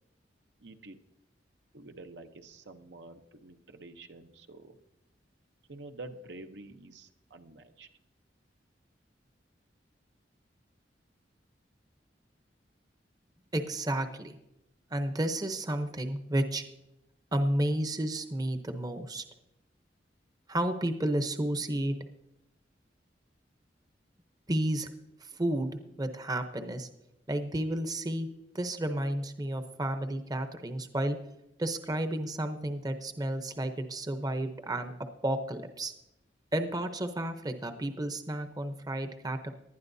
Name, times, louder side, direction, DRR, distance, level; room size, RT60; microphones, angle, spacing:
voice 1, 0.6-1.0 1.7-4.8 5.7-7.9, right 2 dB, 70° right, 6 dB, 0.8 m, -48 dB
voice 2, 13.5-14.4 14.9-16.6 17.3-19.2 20.5-21.9 24.5-24.9 25.2-26.9 27.3-28.3 28.5-31.2 31.6-34.9 35.2-35.9 36.5-39.5, right 1 dB, 20° right, 8 dB, 0.8 m, -32 dB
19.0 x 11.5 x 2.7 m, 0.89 s
head